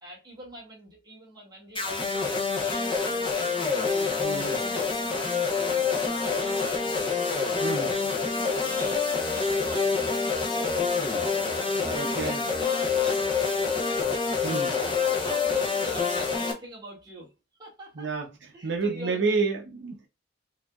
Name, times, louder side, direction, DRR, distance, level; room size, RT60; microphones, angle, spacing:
voice 1, 0.0-3.4 3.8-4.8 5.6-7.2 7.5-11.1 11.4-13.8 14.1-14.5 15.0-17.3 17.6-18.1 18.5-19.4, right 1 dB, 20° right, 2.1 m, -45 dB
sound 1, 1.8-16.5, left 5 dB, 25° left, 0.9 m, -27 dB
voice 2, 4.2-4.6 7.6-7.9 11.9-12.4 14.4-14.7 18.0-18.3 18.6-20.1, right 4 dB, 65° right, 0.7 m, -29 dB
4.8 x 2.8 x 2.3 m
head